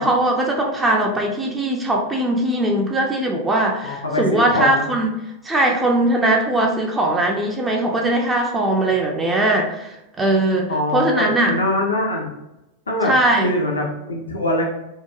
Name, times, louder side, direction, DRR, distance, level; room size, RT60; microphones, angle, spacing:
voice 1, 0.0-5.1 5.4-11.5 13.1-13.5, right 1 dB, 15° right, 0 dB, 0.4 m, -20 dB
voice 2, 3.8-4.9 10.7-12.3 12.9-13.1 13.4-14.6, left 1 dB, 75° left, 0 dB, 0.4 m, -23 dB
2.8 x 2.2 x 2.3 m, 0.93 s
figure-of-eight pair, 90°, 0 cm